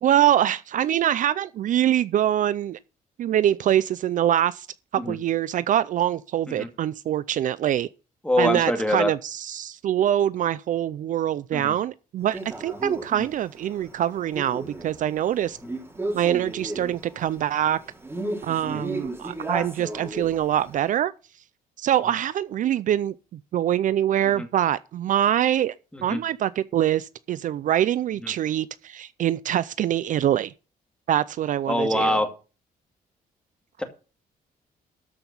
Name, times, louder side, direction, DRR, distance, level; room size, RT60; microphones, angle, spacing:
voice 1, 0.0-2.8 3.2-4.7 4.9-7.9 8.4-15.6 16.1-17.8 18.4-21.1 21.8-23.1 23.5-25.7 26.0-30.5 31.1-32.2, right 11 dB, 55° right, 0.5 m, -24 dB
voice 2, 8.2-9.1 11.5-11.8 13.1-13.2 16.8-16.9 18.6-18.8 24.4-24.5 25.9-26.2 28.2-28.3 31.7-32.3 33.8-33.9, left 1 dB, 5° left, 2.3 m, -25 dB
Male speech man speaking, 12.3-20.8, right 2 dB, 15° right, 3.2 m, -35 dB
13.0 x 5.8 x 7.0 m
cardioid pair, 140°, 16 cm